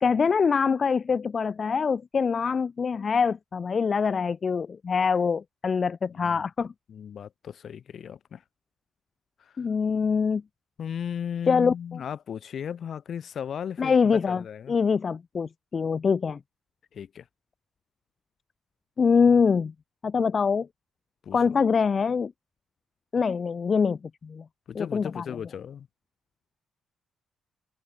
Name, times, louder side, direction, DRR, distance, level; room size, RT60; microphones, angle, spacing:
voice 1, 0.0-6.7 9.6-10.4 11.5-11.7 13.8-16.4 19.0-19.7 20.0-20.7 21.3-22.3 23.1-24.4 24.8-25.2, left 5 dB, 30° left, 0.4 m, -24 dB
voice 2, 6.1-6.4 6.9-8.4 9.4-9.5 10.8-14.7 16.9-17.3 21.2-21.6 24.7-25.9, left 8 dB, 45° left, 1.1 m, -36 dB
cardioid pair, 150°, 0 cm